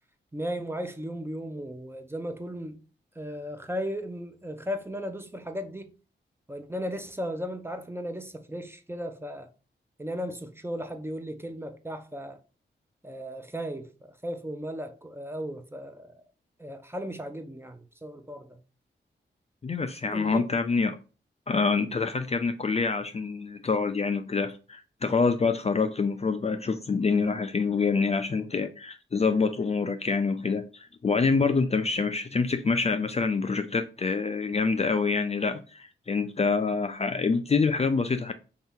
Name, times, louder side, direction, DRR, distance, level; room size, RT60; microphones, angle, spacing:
voice 1, 0.3-2.8 3.2-5.9 6.5-9.5 10.0-12.4 13.0-16.2 16.6-18.6 20.1-20.5, equal, 10° right, 0.6 m, -36 dB
voice 2, 19.6-21.0 21.5-38.3, left 4 dB, 35° left, 0.4 m, -26 dB
3.5 x 2.7 x 3.6 m
cardioid pair, 45°, 20 cm